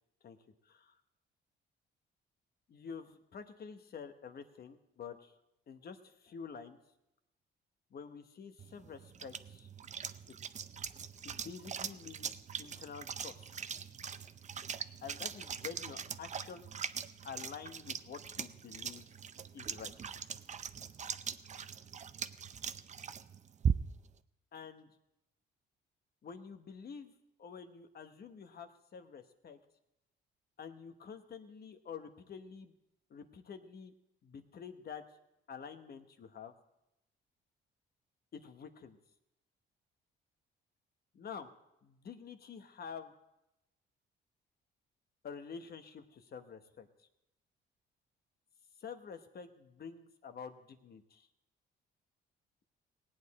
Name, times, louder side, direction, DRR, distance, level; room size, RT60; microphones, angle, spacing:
voice 1, 0.6-0.9 2.7-5.3 5.7-6.8 7.9-9.7 10.3-10.4 11.2-12.3 12.6-13.6 15.0-16.7 17.2-19.1 19.5-20.2 24.5-24.9 26.2-27.1 27.4-29.6 30.6-32.7 33.1-33.9 34.2-35.0 35.5-36.5 38.3-39.0 41.1-41.5 41.8-43.1 45.2-46.9 48.8-51.3, left 6 dB, 50° left, 8 dB, 1.1 m, -48 dB
sound 1, 8.6-24.1, right 7 dB, 35° right, 0.5 m, -41 dB
18.5 x 8.8 x 4.2 m, 0.87 s
cardioid pair, 90°, 20 cm